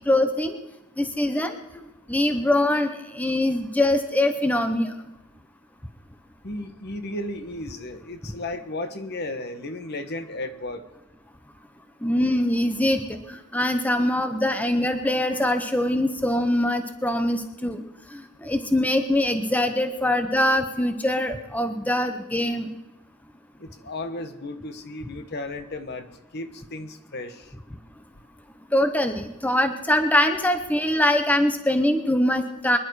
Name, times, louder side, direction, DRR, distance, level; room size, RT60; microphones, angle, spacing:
voice 1, 0.0-0.6 1.0-1.6 2.1-4.9 12.0-17.8 18.1-22.7 28.7-32.8, left 1 dB, 10° left, 7 dB, 0.8 m, -23 dB
voice 2, 6.4-10.9 23.6-27.5, left 2 dB, 50° left, 9 dB, 1.3 m, -34 dB
25.0 x 10.5 x 4.8 m, 0.97 s
head